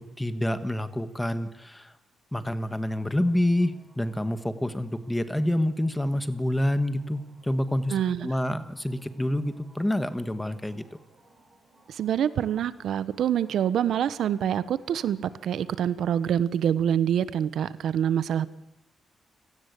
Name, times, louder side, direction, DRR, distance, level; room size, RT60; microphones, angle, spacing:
voice 1, 0.0-1.9 2.3-10.8, left 1 dB, 5° left, 11 dB, 1.6 m, -28 dB
sound 1, 2.8-16.3, right 1 dB, 20° right, 7.7 m, -59 dB
voice 2, 7.9-8.3 11.9-18.5, right 9 dB, 80° right, 16 dB, 1.1 m, -26 dB
29.0 x 18.5 x 8.4 m, 0.81 s
wide cardioid pair, 140°, 0 cm